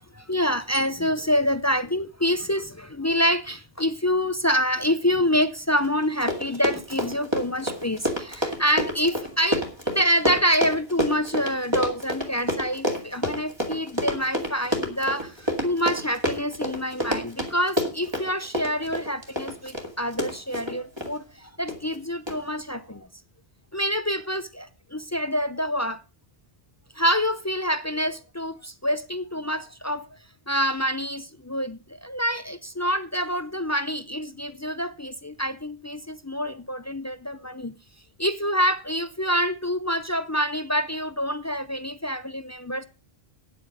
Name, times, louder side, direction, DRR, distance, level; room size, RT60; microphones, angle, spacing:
voice 1, 0.0-23.1 23.7-26.0 26.9-30.2 30.5-37.7 38.2-42.8, equal, 25° left, 0.3 m, -26 dB
Run, 5.8-5.9 6.1-21.1 21.7-22.0 22.3-22.4, equal, 25° right, 2.1 m, -28 dB
9.5 x 8.2 x 6.3 m
omnidirectional pair, 1.1 m